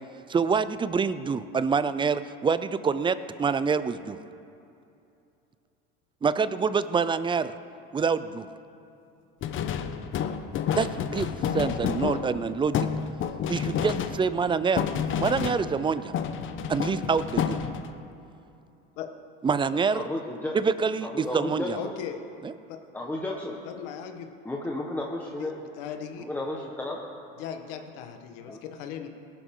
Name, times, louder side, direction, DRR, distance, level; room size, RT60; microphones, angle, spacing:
voice 1, 0.3-4.2 6.2-7.5 7.9-8.5 10.7-12.9 13.5-14.9 15.2-16.2 16.7-17.6 19.4-20.1 20.5-21.8 22.4-22.5, right 5 dB, 15° right, 14 dB, 0.5 m, -26 dB
sound 1, 9.4-15.9 16.1-18.0, left 8 dB, 45° left, 0.9 m, -30 dB
voice 2, 19.9-20.6 21.0-21.9 22.9-23.6 24.4-25.5 26.2-27.1 28.5-28.6, left 1 dB, 5° left, -2 dB, 1.4 m, -33 dB
voice 3, 21.7-22.2 22.7-22.8 23.6-24.3 25.4-26.3 27.3-29.1, left 9 dB, 75° left, 5 dB, 1.5 m, -38 dB
18.5 x 11.5 x 3.8 m, 2.7 s
supercardioid pair, 105°, 29 cm